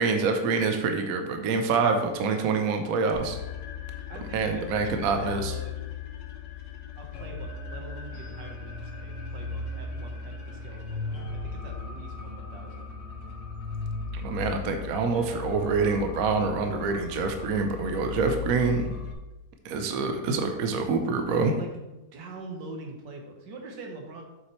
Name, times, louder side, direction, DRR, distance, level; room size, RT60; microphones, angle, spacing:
voice 1, 0.0-3.4 4.3-5.5 14.1-19.0 19.6-21.6, right 4 dB, 65° right, 5 dB, 1.1 m, -26 dB
sound 1, 3.1-19.1, left 5 dB, 85° left, 1.6 m, -37 dB
voice 2, 4.1-5.8 7.0-12.9 21.6-24.2, right 2 dB, 90° right, 1 dB, 1.8 m, -43 dB
7.5 x 5.9 x 3.1 m, 1.0 s
omnidirectional pair, 1.8 m